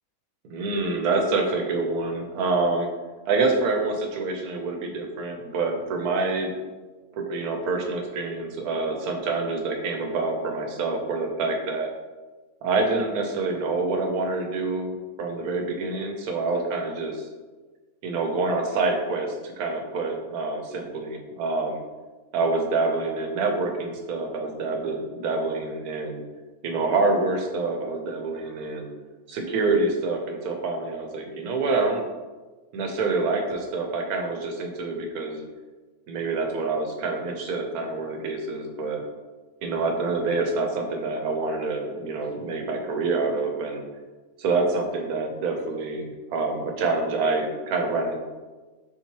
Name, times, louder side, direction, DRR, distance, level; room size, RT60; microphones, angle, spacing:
voice 1, 0.4-2.9 3.3-6.5 7.1-11.9 12.6-14.9 15.2-17.3 18.0-21.8 22.3-26.2 26.6-28.9 29.3-32.0 32.7-35.5 36.1-39.0 39.6-43.8 44.4-48.2, right 3 dB, 90° right, 3 dB, 1.2 m, -26 dB
4.2 x 2.8 x 4.4 m, 1.3 s
omnidirectional pair, 1.5 m